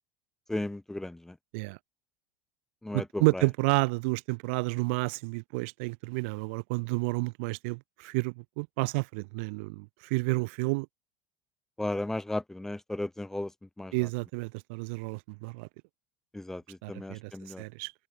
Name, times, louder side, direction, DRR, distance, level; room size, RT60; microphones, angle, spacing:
voice 1, 0.5-1.3 2.8-3.4 11.8-13.5 13.8-13.9 16.3-17.6, left 1 dB, 5° left, 1.1 m, -35 dB
voice 2, 2.9-10.9 13.9-15.7 16.8-17.3 17.6-17.9, right 29 dB, 75° right, 1.0 m, -30 dB
open air
supercardioid pair, 110°, 7 cm